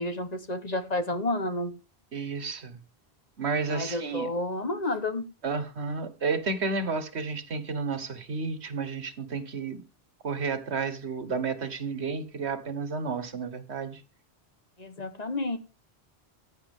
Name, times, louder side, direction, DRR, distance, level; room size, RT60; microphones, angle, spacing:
voice 1, 0.0-1.7 3.7-5.3 14.8-15.6, left 2 dB, 40° left, 1.2 m, -30 dB
voice 2, 2.1-2.8 3.4-4.3 5.4-9.8 10.2-14.0, right 4 dB, 85° right, 1.6 m, -31 dB
15.0 x 10.5 x 3.6 m
omnidirectional pair, 1.1 m